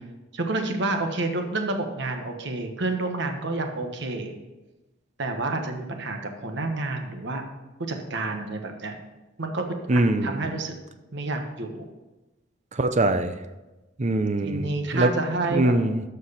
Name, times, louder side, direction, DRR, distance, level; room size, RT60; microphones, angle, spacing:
voice 1, 0.3-4.3 5.2-7.4 7.8-9.0 9.4-9.6 9.9-10.7 11.1-11.9 14.4-15.7, right 2 dB, 65° right, 5 dB, 1.2 m, -29 dB
voice 2, 9.9-10.4 12.8-13.3 14.0-14.6 14.9-15.1 15.5-16.0, right 2 dB, 40° right, 9 dB, 0.7 m, -22 dB
13.0 x 4.7 x 5.6 m, 1.1 s
head